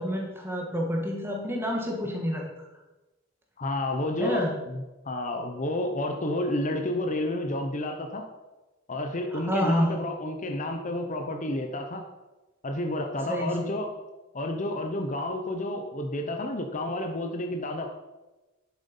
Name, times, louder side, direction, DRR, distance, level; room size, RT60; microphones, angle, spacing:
voice 1, 0.0-2.5 4.2-4.5 9.3-10.1 13.3-13.8, equal, 10° right, 0 dB, 2.2 m, -28 dB
voice 2, 3.6-8.3 8.9-12.0 12.6-13.9 14.3-17.9, left 1 dB, 40° left, 4 dB, 0.9 m, -30 dB
10.5 x 7.9 x 5.5 m, 1.1 s
head